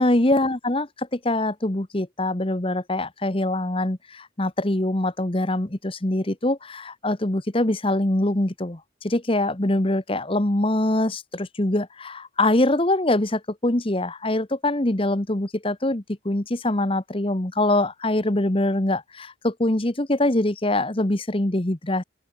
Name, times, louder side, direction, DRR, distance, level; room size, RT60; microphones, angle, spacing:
voice 1, 0.0-22.0, left 1 dB, 25° left, 1.2 m, -23 dB
open air
head